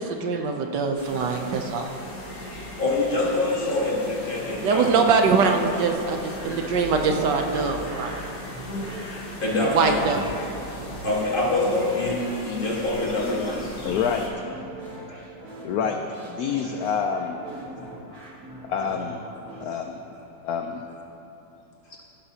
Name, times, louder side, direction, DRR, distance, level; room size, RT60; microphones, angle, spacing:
voice 1, 0.0-1.9 4.6-8.2 9.7-10.2, right 5 dB, 70° right, 4 dB, 1.2 m, -23 dB
sound 1, 0.9-14.3, left 1 dB, 55° left, 2.2 m, -37 dB
voice 2, 2.8-5.1 9.4-10.0 10.3-13.7 15.1-15.3 16.6-16.8 17.8-18.0 19.5-19.6, left 2 dB, 30° left, -4 dB, 1.6 m, -26 dB
sound 2, 3.7-19.7, right 2 dB, 45° right, 1.9 m, -42 dB
voice 3, 13.8-14.3 15.6-17.4 18.7-19.2 19.6-20.0 20.4-20.9, left 6 dB, 75° left, 4 dB, 0.8 m, -27 dB
16.0 x 11.0 x 2.8 m, 3.0 s
omnidirectional pair, 2.1 m